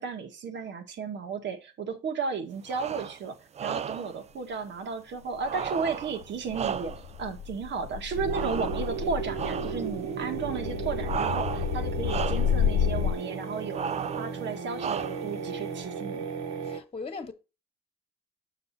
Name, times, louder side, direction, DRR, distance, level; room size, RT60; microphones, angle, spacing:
voice 1, 0.0-16.3, right 5 dB, 65° right, 1.5 m, -34 dB
sound 1, 2.7-3.2 3.6-4.2 5.4-7.2 8.3-9.0 9.3-9.9 11.0-11.8 12.0-12.6 13.7-14.3 14.8-15.4, right 7 dB, 35° right, 0.4 m, -34 dB
sound 2, 5.4-13.2, left 9 dB, 85° left, 0.4 m, -31 dB
sound 3, 8.1-16.8, right 6 dB, 85° right, 1.0 m, -35 dB
voice 2, 16.6-17.3, left 4 dB, 30° left, 1.3 m, -38 dB
7.0 x 6.4 x 2.7 m
cardioid pair, 90°, 20 cm